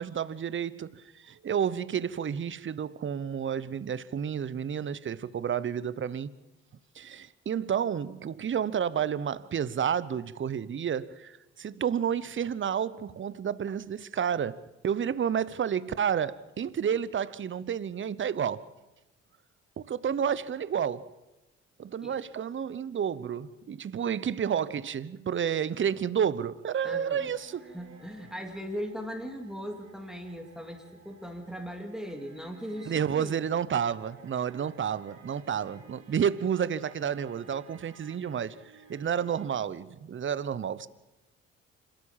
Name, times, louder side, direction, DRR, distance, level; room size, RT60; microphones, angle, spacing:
voice 1, 0.0-6.3 7.0-18.6 19.8-21.1 21.8-27.6 32.9-38.6 38.9-40.9, right 8 dB, 35° right, 0.9 m, -30 dB
voice 2, 26.8-27.3 27.7-33.6, equal, ahead, 2.8 m, -39 dB
sound 1, 27.0-39.5, right 5 dB, 55° right, 4.9 m, -55 dB
27.0 x 13.0 x 7.4 m
hypercardioid pair, 50°, 34 cm